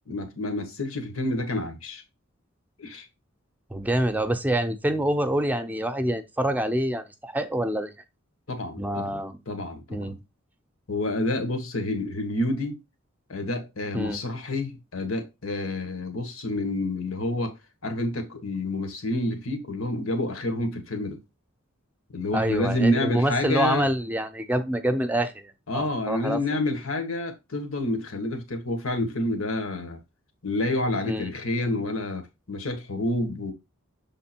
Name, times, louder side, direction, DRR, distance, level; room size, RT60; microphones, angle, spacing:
voice 1, 0.1-2.0 2.8-3.1 8.5-9.2 9.5-10.2 10.9-12.8 13.3-17.6 17.8-21.2 22.1-23.9 25.7-30.0 30.4-33.5, left 1 dB, 90° left, 1.4 m, -28 dB
voice 2, 3.7-7.9 8.8-9.4 9.9-10.2 13.9-14.2 22.3-26.4 31.1-31.3, right 1 dB, 10° right, 0.6 m, -26 dB
6.8 x 3.7 x 4.3 m
head